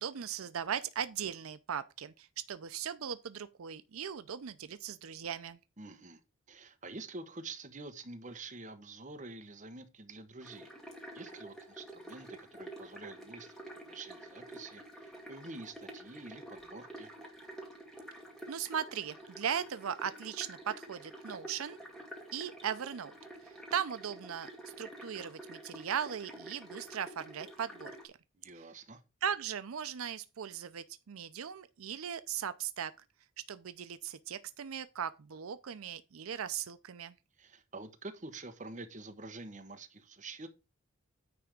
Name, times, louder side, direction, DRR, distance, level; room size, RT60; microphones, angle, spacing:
voice 1, 0.0-5.6 18.5-21.8 22.3-23.1 23.7-24.5 24.8-28.2 28.6-28.7 29.2-32.9 33.5-37.1, right 8 dB, 85° right, 0.5 m, -38 dB
voice 2, 5.8-6.2 6.5-10.7 11.1-17.1 28.3-29.0 37.4-40.5, right 3 dB, 35° right, 1.0 m, -47 dB
sound 1, 10.4-28.0, right 1 dB, ahead, 1.7 m, -49 dB
9.5 x 3.4 x 6.3 m
head